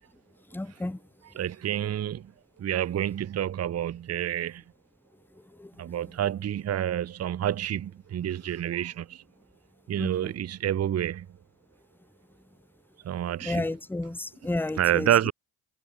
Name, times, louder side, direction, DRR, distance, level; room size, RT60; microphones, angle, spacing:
voice 1, 0.5-1.0 5.6-5.7 10.0-10.1 13.4-15.1, left 2 dB, 5° left, 0.9 m, -31 dB
voice 2, 1.2-2.3 2.6-4.6 5.8-9.2 9.9-11.3 13.0-13.7 14.8-15.3, right 11 dB, 35° right, 0.7 m, -28 dB
supercardioid pair, 70°, 43 cm